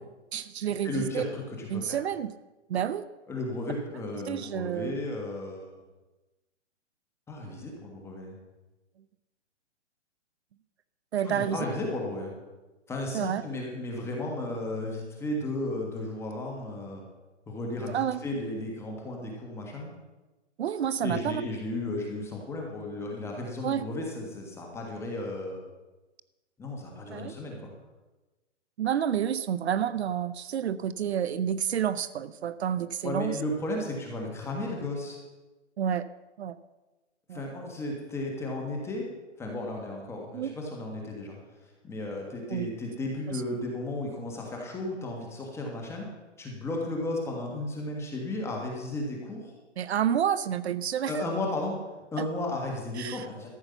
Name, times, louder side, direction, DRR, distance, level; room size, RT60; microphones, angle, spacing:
voice 1, 0.3-1.2 1.7-2.3 2.7-3.0 4.3-5.0 11.1-11.6 13.1-13.4 17.9-18.2 20.6-21.4 23.6-23.9 27.1-27.3 28.8-33.4 35.8-36.1 36.4-36.6 37.3-37.4 40.3-40.5 42.5-42.7 43.3-43.4 49.8-51.1 53.0-53.3, right 9 dB, 60° right, 15 dB, 0.6 m, -29 dB
voice 2, 0.8-2.0 3.3-5.7 7.3-8.3 11.2-12.3 12.9-17.1 17.5-19.9 21.0-25.6 26.6-27.6 33.0-35.2 37.3-39.1 39.4-41.4 41.8-46.1 46.4-49.5 51.1-51.7 52.1-53.5, left 2 dB, 5° left, 0 dB, 1.5 m, -34 dB
13.5 x 6.9 x 6.9 m, 1.1 s
hypercardioid pair, 160°, 36 cm